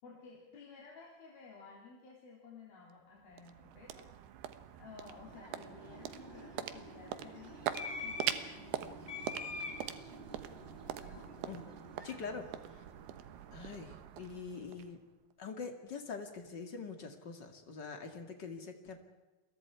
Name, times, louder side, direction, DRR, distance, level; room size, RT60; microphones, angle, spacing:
voice 1, 0.0-4.5 4.7-7.6 8.0-9.2 11.0-11.3, left 4 dB, 65° left, -3 dB, 5.2 m, -55 dB
sound 1, 2.9-15.3, right 11 dB, 80° right, 3.1 m, -43 dB
sound 2, 5.0-13.6, left 2 dB, 5° left, 3.0 m, -47 dB
voice 2, 12.0-12.5 12.7-12.8 13.5-15.0 15.4-19.0, left 5 dB, 35° left, 5 dB, 2.1 m, -44 dB
29.5 x 22.0 x 4.8 m, 1.2 s
omnidirectional pair, 4.6 m